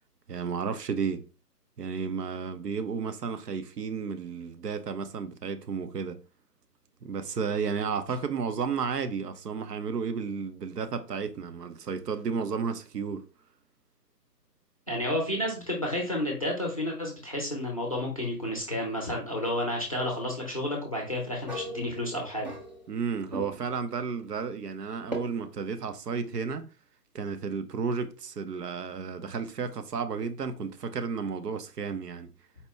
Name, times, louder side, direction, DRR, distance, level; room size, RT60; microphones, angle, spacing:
voice 1, 0.3-1.2 1.8-6.2 7.0-13.2 22.9-26.7 27.1-32.3, right 5 dB, 75° right, 0.7 m, -32 dB
voice 2, 14.9-22.5, left 1 dB, 25° left, 0.5 m, -31 dB
sound 1, 21.5-23.1 23.3-23.8 25.1-25.2, equal, 30° right, 0.5 m, -38 dB
4.2 x 2.1 x 3.4 m
figure-of-eight pair, 145°, 49 cm